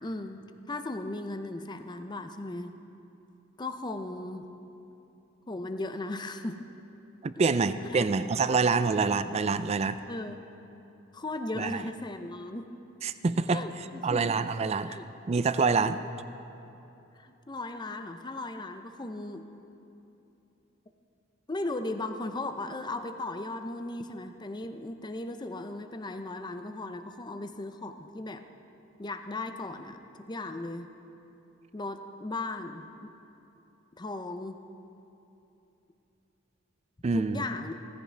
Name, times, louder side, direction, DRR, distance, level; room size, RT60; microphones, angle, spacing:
voice 1, 0.0-2.7 3.6-4.5 5.5-6.6 7.9-8.1 10.1-10.4 11.1-12.7 13.5-14.2 14.6-15.1 17.1-19.5 21.5-28.5 29.0-30.0 30.3-30.9 31.7-33.1 34.0-34.6 37.1-37.8, left 2 dB, 20° left, 8 dB, 0.6 m, -37 dB
voice 2, 7.2-10.0 11.6-11.8 13.0-13.6 14.0-14.9 15.3-16.0 37.0-37.5, right 4 dB, 35° right, 13 dB, 0.4 m, -26 dB
16.5 x 15.0 x 3.4 m, 2.9 s
head